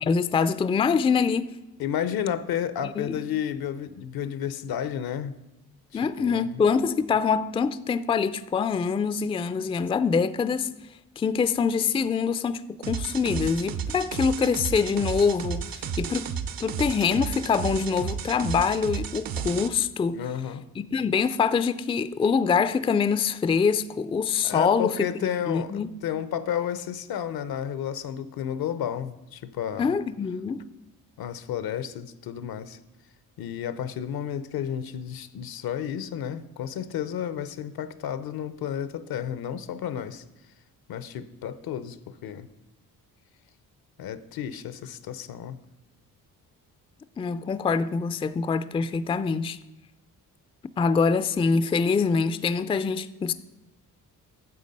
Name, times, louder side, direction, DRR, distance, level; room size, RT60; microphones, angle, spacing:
voice 1, 0.0-1.5 3.0-3.2 5.9-10.7 11.2-16.3 16.6-20.2 20.8-25.1 25.5-25.9 29.8-30.6 47.2-49.6 50.8-53.3, left 5 dB, 15° left, 0.3 m, -24 dB
voice 2, 1.8-5.3 5.9-6.6 20.1-20.7 24.4-29.9 31.2-32.8 33.4-40.2 40.9-42.5 44.0-45.6, left 9 dB, 75° left, 0.7 m, -32 dB
sound 1, 12.8-19.7, right 7 dB, 70° right, 0.8 m, -32 dB
9.8 x 6.9 x 5.3 m
cardioid pair, 95°, 36 cm